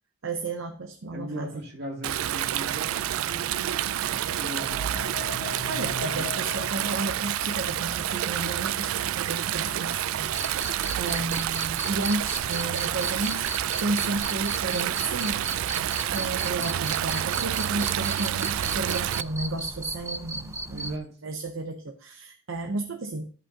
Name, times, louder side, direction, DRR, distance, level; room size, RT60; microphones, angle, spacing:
voice 1, 0.2-1.5 5.7-15.5 15.8-23.3, right 2 dB, 70° right, 5 dB, 0.7 m, -33 dB
voice 2, 1.1-5.6 6.1-6.6 20.7-21.2, right 1 dB, 50° right, -2 dB, 2.4 m, -39 dB
Stream, 2.0-19.2, right 12 dB, 90° right, 0.3 m, -29 dB
sound 1, 3.8-7.8, left 5 dB, 70° left, 2.0 m, -40 dB
Cricket, 10.3-21.0, right 2 dB, 15° right, 0.5 m, -36 dB
13.5 x 5.4 x 2.8 m, 0.40 s
head